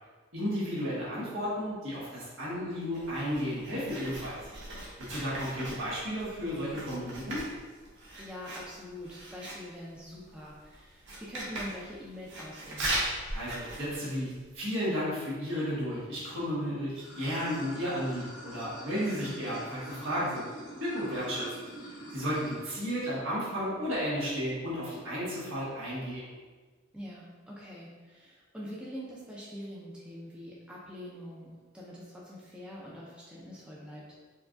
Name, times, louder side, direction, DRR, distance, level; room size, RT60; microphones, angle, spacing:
voice 1, 0.3-4.4 5.1-7.4 13.3-14.3 14.5-20.5 20.8-21.4 22.1-26.3, equal, 85° right, -8 dB, 1.4 m, -33 dB
Writing, 2.9-14.6, right 1 dB, 60° right, 0.8 m, -39 dB
voice 2, 8.2-12.9 19.2-19.3 26.9-34.1, equal, 5° right, -6 dB, 0.4 m, -44 dB
Water / Sink (filling or washing), 16.9-22.6, right 1 dB, 75° left, 1.2 m, -44 dB
4.6 x 2.3 x 2.5 m, 1.4 s
head